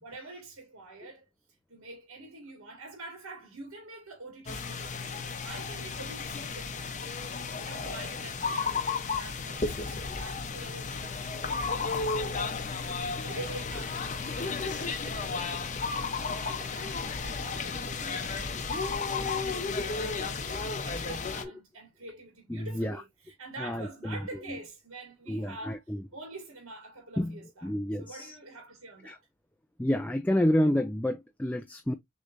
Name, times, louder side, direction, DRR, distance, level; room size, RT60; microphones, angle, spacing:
voice 1, 0.0-1.3 1.7-8.8 9.1-12.4 13.2-18.9 19.2-25.8 26.1-27.7 28.0-29.3, right 2 dB, 85° right, 1.9 m, -46 dB
sound 1, 4.5-21.4, left 4 dB, 35° left, 0.7 m, -33 dB
voice 2, 22.5-23.0 23.6-24.2 25.3-26.0 27.2-28.4 29.0-29.2 29.8-31.9, left 1 dB, 5° left, 0.3 m, -29 dB
6.5 x 3.2 x 2.5 m
head